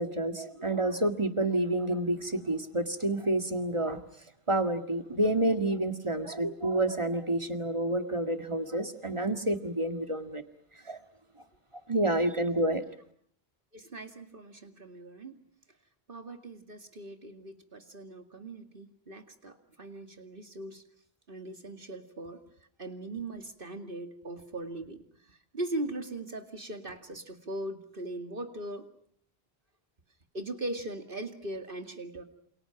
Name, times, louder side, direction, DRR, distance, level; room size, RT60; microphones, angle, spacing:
voice 1, 0.0-4.0 4.5-10.4 10.9-11.0 11.9-12.8, right 1 dB, 30° right, 7 dB, 2.0 m, -29 dB
voice 2, 13.7-15.4 16.1-20.8 21.3-22.4 22.8-25.0 25.3-28.9 30.3-32.2, right 1 dB, 55° right, 6 dB, 2.5 m, -40 dB
28.5 x 28.5 x 5.9 m, 0.64 s
omnidirectional pair, 1.0 m